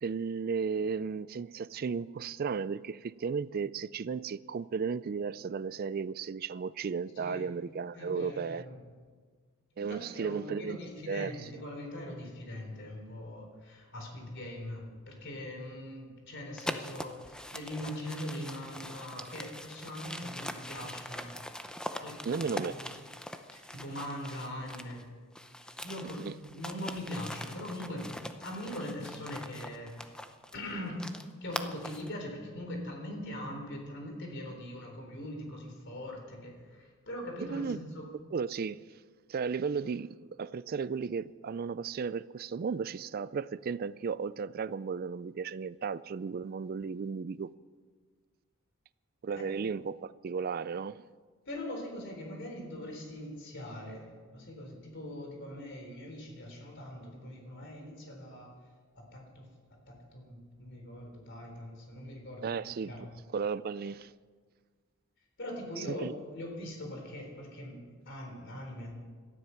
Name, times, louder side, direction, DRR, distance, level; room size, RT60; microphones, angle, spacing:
voice 1, 0.0-8.6 9.8-10.8 11.1-11.3 22.3-22.7 26.2-26.3 37.5-37.8 38.3-38.8 39.3-47.5 49.2-51.0 62.4-62.9 63.3-64.1 65.9-66.1, right 5 dB, 45° right, 17 dB, 0.3 m, -34 dB
voice 2, 7.2-7.5 7.9-8.8 9.9-21.4 22.0-23.0 23.5-25.0 25.8-28.1 28.4-30.0 30.5-31.0 31.4-38.0 49.3-49.4 51.5-58.6 58.9-59.5 59.9-63.1 65.4-69.0, left 1 dB, 55° left, 2 dB, 3.9 m, -41 dB
sound 1, 16.6-25.0 25.3-32.1, left 1 dB, 5° left, 0.6 m, -42 dB
18.0 x 13.0 x 5.8 m, 1.6 s
head